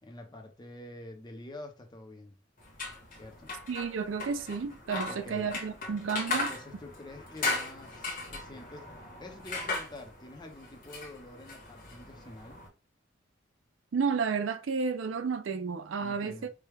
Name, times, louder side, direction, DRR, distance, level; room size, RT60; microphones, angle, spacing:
voice 1, 0.0-2.4 3.1-3.5 5.1-5.5 6.3-12.6 16.0-16.5, left 1 dB, 25° left, 0.7 m, -47 dB
sound 1, 2.6-12.7, left 3 dB, 45° left, 1.2 m, -38 dB
voice 2, 3.7-6.5 13.9-16.5, right 5 dB, 80° right, 0.4 m, -32 dB
4.7 x 2.2 x 3.4 m
head